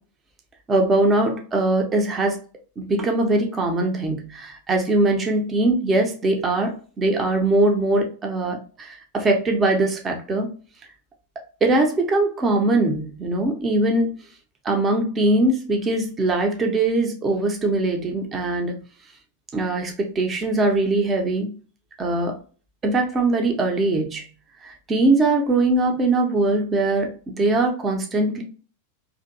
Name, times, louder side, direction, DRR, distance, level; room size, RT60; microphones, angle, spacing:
voice 1, 0.7-2.4 2.8-10.5 11.6-14.1 14.6-18.7 19.5-21.5 22.0-22.4 22.8-24.3 24.6-28.4, right 2 dB, 20° right, 3 dB, 0.6 m, -21 dB
2.6 x 2.5 x 2.6 m, 0.38 s
figure-of-eight pair, 90°, 0 cm